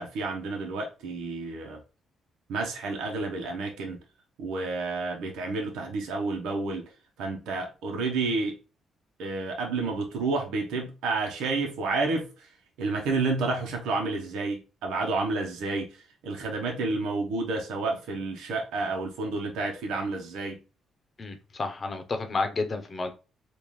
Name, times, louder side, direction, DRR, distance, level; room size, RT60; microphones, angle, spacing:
voice 1, 0.0-1.8 2.5-4.0 4.4-6.9 7.2-8.6 9.2-12.5 12.8-20.6, right 3 dB, 85° right, 0.9 m, -30 dB
voice 2, 21.2-23.1, left 3 dB, 35° left, 0.8 m, -31 dB
3.7 x 2.5 x 3.1 m
cardioid pair, 90°, 0 cm